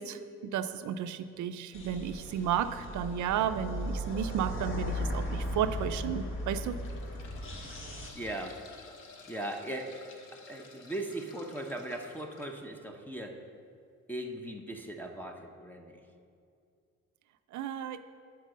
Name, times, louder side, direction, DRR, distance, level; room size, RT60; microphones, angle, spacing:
voice 1, 0.0-6.8 17.5-18.0, right 9 dB, 75° right, 10 dB, 0.6 m, -33 dB
sound 1, 1.7-8.1, left 1 dB, 45° left, 1.5 m, -37 dB
sound 2, 6.4-12.6 14.2-14.3 14.6-14.7, left 3 dB, 85° left, 1.0 m, -53 dB
voice 2, 8.1-8.6 9.3-10.0 10.5-13.4 14.1-16.0, right 1 dB, 5° left, 3 dB, 0.8 m, -39 dB
9.2 x 4.7 x 6.5 m, 2.4 s
cardioid pair, 90°, 30 cm